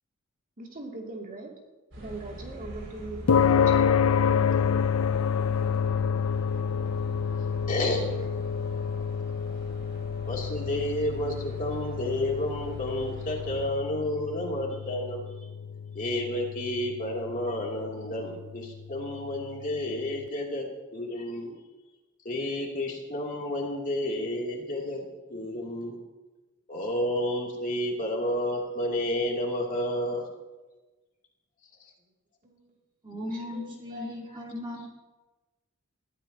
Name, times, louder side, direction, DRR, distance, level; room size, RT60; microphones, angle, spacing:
voice 1, 0.6-1.6 2.0-3.3 3.7-4.8 32.4-32.6 33.3-34.4, right 2 dB, 40° right, -1 dB, 2.7 m, -41 dB
sound 1, 1.9-13.7, equal, 65° right, 5.8 m, -43 dB
sound 2, 3.3-19.8, left 7 dB, 70° left, 0.4 m, -29 dB
voice 2, 7.7-8.0 10.3-15.3 15.9-21.5 22.2-25.9 26.7-30.3, left 1 dB, 40° left, -2 dB, 2.9 m, -31 dB
voice 3, 33.0-34.9, left 1 dB, 20° right, -1 dB, 1.8 m, -37 dB
21.0 x 14.0 x 2.9 m, 1.2 s
head